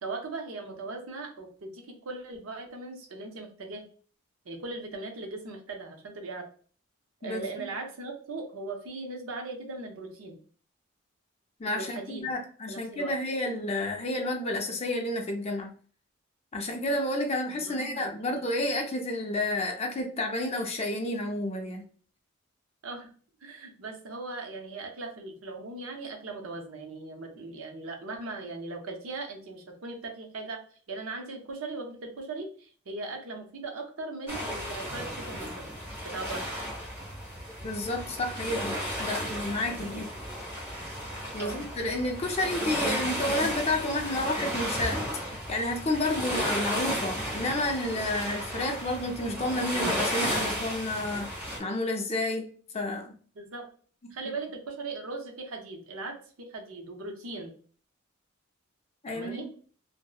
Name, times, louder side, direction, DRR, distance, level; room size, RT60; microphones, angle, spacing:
voice 1, 0.0-3.8 4.5-6.5 7.2-10.4 11.7-12.3 12.7-13.1 17.5-18.5 22.8-23.1 23.4-30.6 30.9-35.7 36.0-36.5 39.6-40.0 41.4-41.6 53.4-53.7 54.1-57.5 59.1-59.5, right 3 dB, 80° right, 3 dB, 0.6 m, -39 dB
voice 2, 7.2-7.7 11.6-15.7 16.5-21.8 37.6-40.1 41.3-51.3 51.6-52.5 52.7-53.1 59.0-59.5, left 1 dB, 30° left, 2 dB, 0.5 m, -30 dB
sound 1, 34.3-51.6, equal, 10° right, 1.0 m, -34 dB
2.7 x 2.0 x 2.3 m, 0.43 s
head